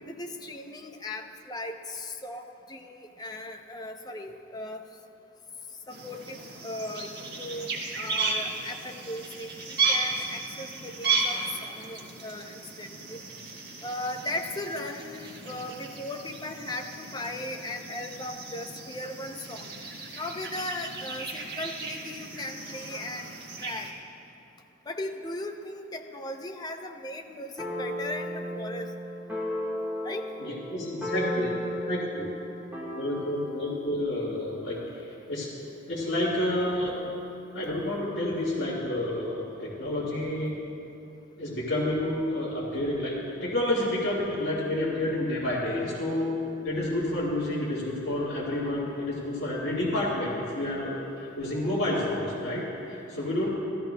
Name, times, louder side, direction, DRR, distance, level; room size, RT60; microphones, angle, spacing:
voice 1, 0.1-4.8 5.9-6.4 6.6-9.5 9.9-13.2 13.8-19.7 20.1-23.9 24.9-28.9 30.0-30.3, left 1 dB, 20° left, 4 dB, 0.5 m, -37 dB
sound 1, 5.9-23.9, right 4 dB, 50° right, 1.3 m, -34 dB
sound 2, 27.6-33.8, left 1 dB, 10° right, 1.4 m, -34 dB
voice 2, 30.4-32.3 32.9-35.5 35.9-36.9 37.5-40.6 41.4-46.4 46.6-53.5, left 1 dB, 60° left, -9 dB, 1.8 m, -29 dB
14.5 x 13.5 x 2.2 m, 2.8 s
head